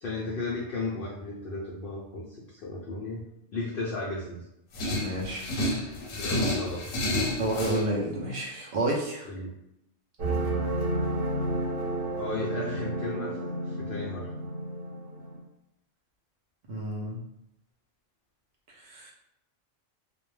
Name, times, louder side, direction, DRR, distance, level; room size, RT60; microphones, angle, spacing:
voice 1, 0.0-3.2 3.5-4.5 6.2-6.9 9.2-9.5 12.1-14.3, left 2 dB, 60° left, -5 dB, 0.6 m, -35 dB
sound 1, 4.7-7.8, left 1 dB, 85° left, 1.0 m, -30 dB
voice 2, 4.9-5.5 7.4-9.2 16.7-17.2 18.8-19.1, right 1 dB, 75° right, -3 dB, 0.4 m, -30 dB
sound 2, 10.2-15.4, right 1 dB, 50° right, 0.8 m, -31 dB
2.2 x 2.1 x 3.1 m, 0.83 s
omnidirectional pair, 1.3 m